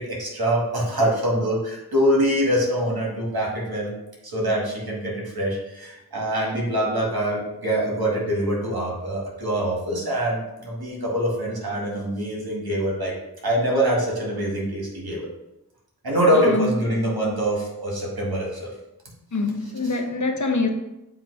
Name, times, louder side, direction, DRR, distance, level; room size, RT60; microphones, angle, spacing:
voice 1, 0.0-3.9 4.3-13.1 13.4-15.3 16.0-18.7 19.8-19.9, right 1 dB, 75° right, 2.1 m, -24 dB
voice 2, 16.3-16.7 17.0-17.1 19.3-20.7, left 3 dB, 50° left, 0.8 m, -25 dB
7.3 x 2.9 x 4.8 m
wide cardioid pair, 40°, 37 cm